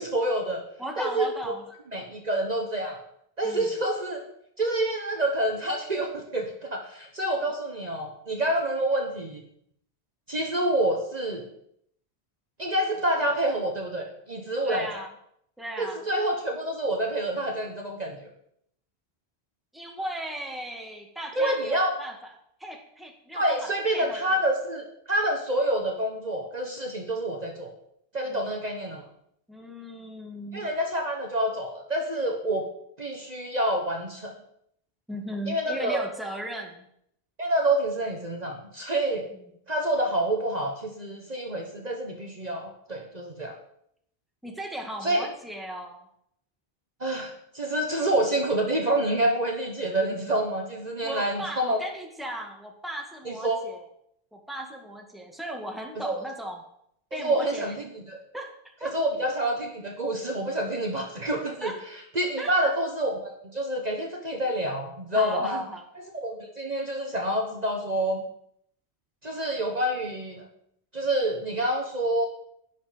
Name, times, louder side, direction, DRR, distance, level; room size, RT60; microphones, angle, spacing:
voice 1, 0.0-0.6 1.0-1.3 1.9-3.0 3.4-4.2 4.6-9.4 10.3-11.4 12.6-14.9 15.8-18.2 21.3-21.9 23.3-27.7 28.1-29.0 30.5-32.7 33.0-34.3 35.5-36.0 37.4-39.3 39.7-43.5 45.0-45.3 47.0-51.8 53.2-53.6 56.0-56.2 57.1-58.2 58.8-61.7 62.1-65.6 66.2-68.2 69.2-70.5 70.9-72.3, right 1 dB, 40° right, 1 dB, 1.4 m, -27 dB
voice 2, 0.8-1.6 3.4-3.7 7.4-7.5 14.6-15.1 15.6-16.0 19.7-22.3 22.6-24.2 28.3-28.5 29.5-30.7 35.1-36.9 39.3-39.4 44.4-46.1 51.0-53.8 54.3-56.6 57.1-57.8 58.3-59.0 61.6-61.9 62.4-62.6 65.1-65.9, right 1 dB, ahead, 1 dB, 1.9 m, -37 dB
11.0 x 10.0 x 5.2 m, 0.71 s
omnidirectional pair, 1.1 m